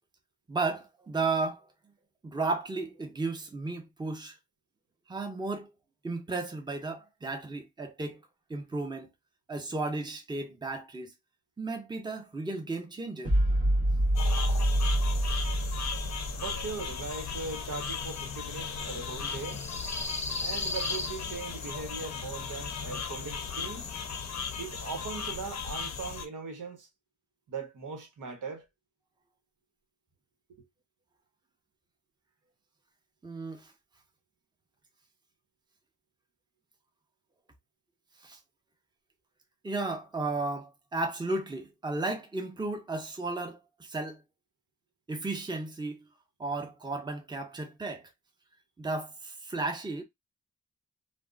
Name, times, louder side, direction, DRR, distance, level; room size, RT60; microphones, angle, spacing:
voice 1, 0.5-1.7 2.2-4.4 5.1-5.7 6.0-8.2 8.5-9.1 9.5-11.1 11.6-13.4 33.2-33.7 38.2-38.4 39.6-44.2 45.1-46.0 46.4-48.1 48.8-50.0, right 3 dB, 15° right, 0.7 m, -34 dB
sound 1, 13.2-16.7, right 1 dB, 45° right, 1.5 m, -26 dB
sound 2, 14.1-26.3, left 6 dB, 60° left, 0.6 m, -37 dB
sound 3, 14.5-25.4, left 2 dB, 25° left, 0.6 m, -42 dB
voice 2, 16.4-19.7 20.4-23.9 24.6-26.9 27.5-28.7, right 4 dB, 80° right, 1.0 m, -39 dB
3.4 x 2.0 x 2.5 m
wide cardioid pair, 110°, 31 cm